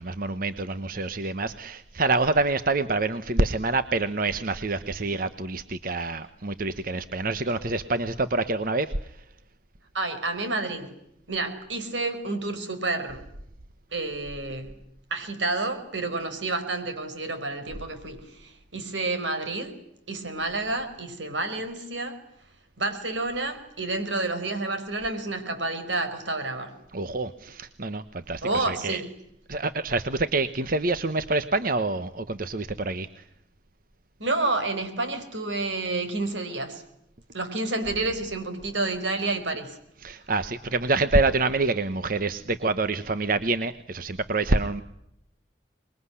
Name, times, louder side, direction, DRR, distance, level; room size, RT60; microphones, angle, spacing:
voice 1, 0.0-8.9 26.9-29.0 29.5-33.1 40.0-44.8, right 3 dB, 50° right, 11 dB, 1.1 m, -26 dB
voice 2, 9.9-10.9 11.3-13.2 13.9-14.7 15.1-19.8 20.1-22.2 22.8-26.7 28.4-29.1 34.2-36.8 37.3-39.8, right 2 dB, 90° right, 8 dB, 5.1 m, -29 dB
25.5 x 22.0 x 9.9 m, 0.78 s
head